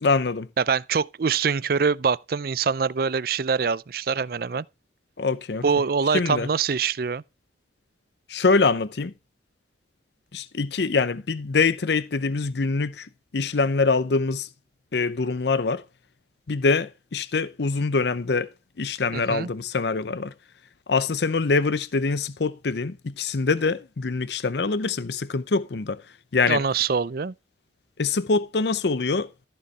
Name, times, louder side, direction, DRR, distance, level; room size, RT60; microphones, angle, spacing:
voice 1, 0.0-0.5 5.2-5.6 6.1-6.5 8.3-9.1 10.3-14.5 14.9-15.8 16.5-18.5 18.8-20.3 20.9-26.0 26.3-26.6 28.0-29.3, left 4 dB, 65° left, 0.6 m, -24 dB
voice 2, 0.6-4.7 5.6-7.2 19.1-19.5 26.5-27.3, right 5 dB, 55° right, 0.5 m, -24 dB
14.0 x 6.8 x 3.3 m
head